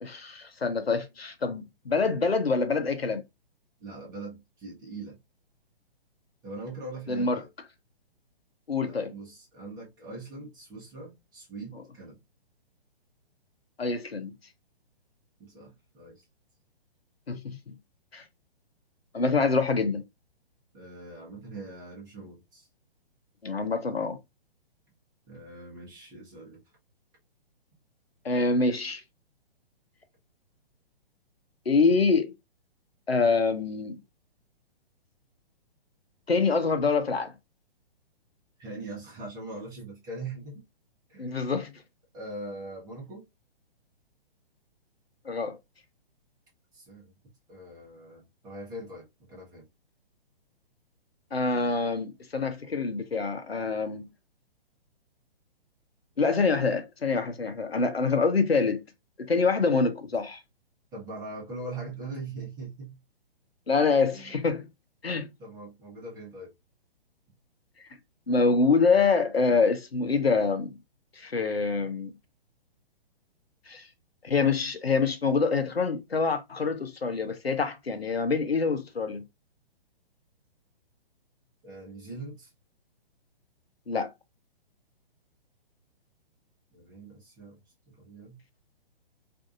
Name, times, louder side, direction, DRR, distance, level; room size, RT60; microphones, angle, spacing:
voice 1, 0.0-3.2 7.1-7.4 8.7-9.1 13.8-14.3 17.3-17.7 18.1-18.2 19.1-20.0 23.4-24.2 28.2-29.0 31.7-32.3 33.1-34.0 36.3-37.3 41.2-41.7 45.3-45.6 51.3-54.1 56.2-58.8 59.2-60.4 63.7-64.7 65.0-65.3 68.3-70.8 71.2-72.1 73.7-73.8 74.2-79.2 83.9-84.1, left 4 dB, 85° left, 0.6 m, -26 dB
voice 2, 3.8-5.2 6.4-7.5 8.8-12.2 15.4-16.2 20.7-22.7 25.3-26.6 38.6-40.6 41.1-41.3 42.1-43.2 46.7-47.1 47.5-49.7 54.0-54.1 60.9-63.0 64.1-64.3 65.4-66.5 81.6-82.5 86.7-87.6 87.9-88.4, right 2 dB, 10° right, 0.8 m, -42 dB
2.6 x 2.3 x 2.4 m
figure-of-eight pair, 125°, 30 cm